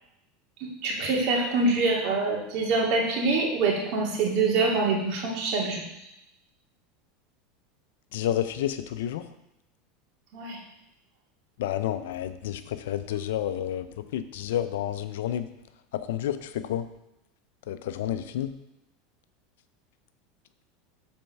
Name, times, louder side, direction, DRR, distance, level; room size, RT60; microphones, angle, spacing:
voice 1, 0.6-6.1 10.3-10.6, right 3 dB, 60° right, -1 dB, 2.2 m, -25 dB
voice 2, 8.1-9.3 11.6-15.5 15.9-16.9 17.7-18.6, left 11 dB, 80° left, 12 dB, 0.5 m, -30 dB
7.7 x 4.3 x 5.8 m, 0.86 s
supercardioid pair, 105°, 0 cm